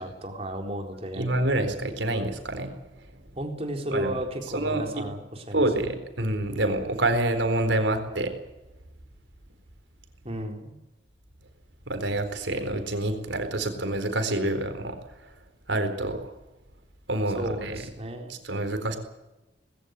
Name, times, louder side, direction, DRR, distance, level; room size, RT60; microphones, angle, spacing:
voice 1, 0.0-1.3 3.4-5.7 10.2-10.8 17.4-18.3, right 1 dB, 35° right, 3 dB, 4.1 m, -34 dB
voice 2, 1.1-2.7 3.9-4.2 4.5-5.0 5.5-8.3 11.9-15.0 15.7-16.3 17.1-17.8 18.3-19.0, right 1 dB, 85° right, 7 dB, 4.1 m, -27 dB
20.0 x 16.5 x 9.6 m, 1.0 s
head